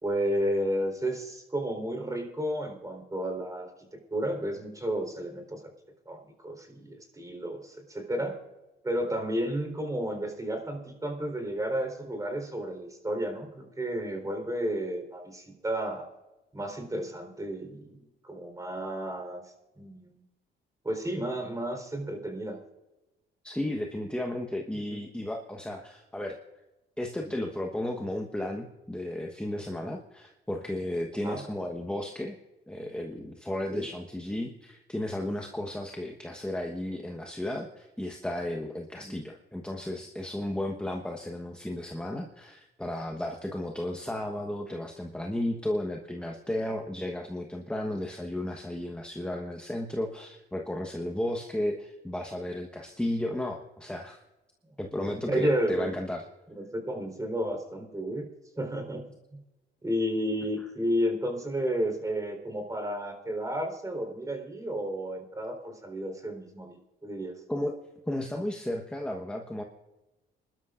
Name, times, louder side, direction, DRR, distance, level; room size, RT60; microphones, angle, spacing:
voice 1, 0.0-5.6 6.1-8.4 8.8-16.1 16.5-18.0 18.2-19.4 19.8-20.2 20.8-22.6 24.9-25.0 31.2-31.4 33.7-33.9 39.0-39.1 55.3-55.9 56.6-58.3 58.6-59.0 59.8-67.3, equal, 15° right, 4 dB, 3.9 m, -32 dB
voice 2, 23.4-26.3 27.0-32.4 32.7-54.2 54.8-56.2 67.5-67.8 68.1-69.6, left 1 dB, 5° left, 2 dB, 1.2 m, -34 dB
27.0 x 12.5 x 2.5 m, 1.0 s
cardioid pair, 90°, 20 cm